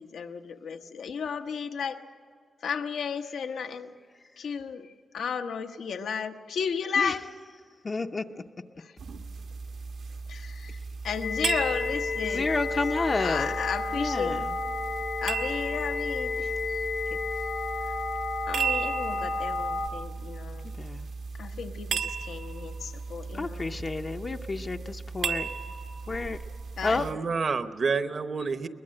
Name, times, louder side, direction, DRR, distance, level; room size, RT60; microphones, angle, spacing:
voice 1, 0.0-2.0 2.6-3.9 4.4-7.2 8.8-8.9 10.3-10.8 11.0-12.5 13.2-14.4 15.2-16.8 17.1-17.2 18.5-20.7 21.4-23.8 26.8-27.0, left 6 dB, 85° left, 6 dB, 1.1 m, -34 dB
voice 2, 7.8-8.2 12.2-13.6 14.0-14.4 20.8-21.1 23.3-25.5 26.1-26.4 26.8-27.1, left 3 dB, 30° left, 4 dB, 0.6 m, -30 dB
sound 1, 9.0-27.1, right 5 dB, 80° right, 1.2 m, -36 dB
sound 2, 11.2-19.9, left 3 dB, 70° left, 1.4 m, -31 dB
voice 3, 26.8-28.7, right 5 dB, 45° right, 10 dB, 0.9 m, -29 dB
22.0 x 20.5 x 7.7 m, 2.2 s
wide cardioid pair, 135°, 0 cm